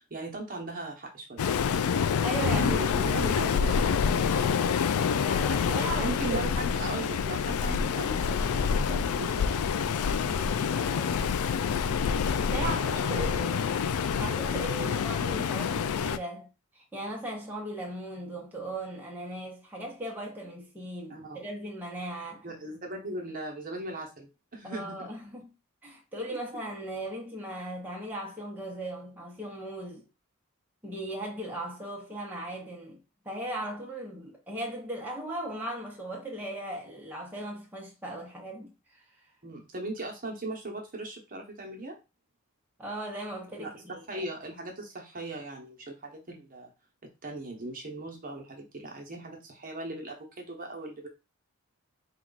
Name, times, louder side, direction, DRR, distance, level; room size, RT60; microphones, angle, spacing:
voice 1, 0.0-1.4 2.4-3.9 4.3-4.5 6.0-9.6 12.6-13.9 14.8-15.0 21.1-21.4 22.4-25.0 39.4-42.0 43.6-46.7 47.2-51.1, right 2 dB, 40° right, 0.9 m, -38 dB
Waves surf, 1.4-16.2, left 6 dB, 80° left, 0.4 m, -27 dB
voice 2, 1.6-2.7 3.5-3.6 5.0-6.5 10.1-11.3 12.4-13.7 14.2-16.5 16.7-22.5 24.6-25.5 25.8-30.0 30.8-33.0 33.2-39.2 42.8-44.2, right 1 dB, 10° right, 0.8 m, -38 dB
4.5 x 2.3 x 3.9 m
head